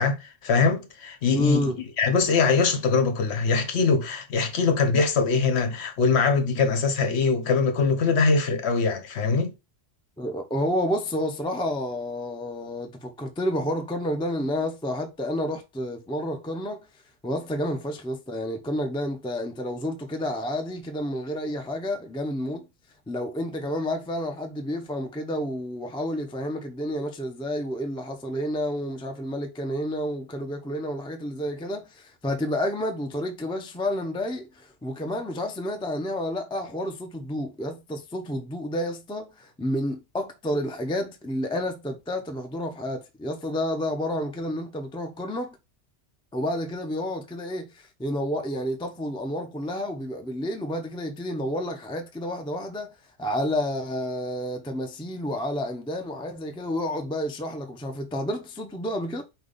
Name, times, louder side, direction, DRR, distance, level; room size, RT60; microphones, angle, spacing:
voice 1, 0.0-9.5, left 4 dB, 65° left, 1.0 m, -22 dB
voice 2, 1.3-1.8 10.2-16.9 17.2-22.7 23.1-45.6 46.3-52.9 53.2-59.2, equal, 5° left, 0.4 m, -30 dB
5.1 x 2.3 x 3.8 m
omnidirectional pair, 1.3 m